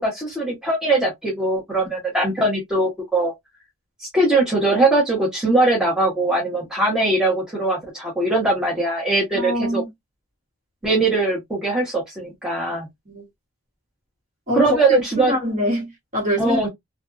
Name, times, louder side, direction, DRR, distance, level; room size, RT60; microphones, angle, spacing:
voice 1, 0.0-3.3 4.0-9.8 10.8-12.9 14.5-15.3 16.4-16.7, right 2 dB, 5° right, 0.9 m, -21 dB
voice 2, 9.3-9.9 13.1-13.2 14.5-16.6, left 1 dB, 35° right, 1.4 m, -24 dB
2.5 x 2.3 x 2.4 m
head